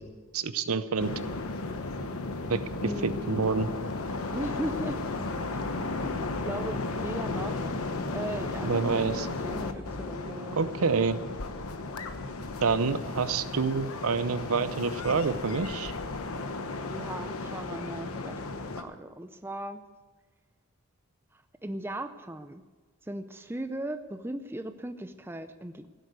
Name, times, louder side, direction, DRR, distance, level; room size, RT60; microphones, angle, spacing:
voice 1, 0.3-1.1 2.5-2.6 3.0-3.7 8.6-9.3 10.6-11.2 12.6-15.9, right 4 dB, 80° right, 13 dB, 0.7 m, -27 dB
sound 1, 1.0-18.8, left 3 dB, 80° left, 1.1 m, -35 dB
sound 2, 2.1-10.1, left 1 dB, 25° left, 1.4 m, -46 dB
voice 2, 2.8-3.6 4.3-5.0 6.4-7.6 8.1-10.6 16.9-18.4 18.8-19.8 21.3-22.6 23.0-25.9, right 1 dB, 10° right, 9 dB, 0.5 m, -37 dB
16.0 x 8.0 x 8.1 m, 1.4 s
head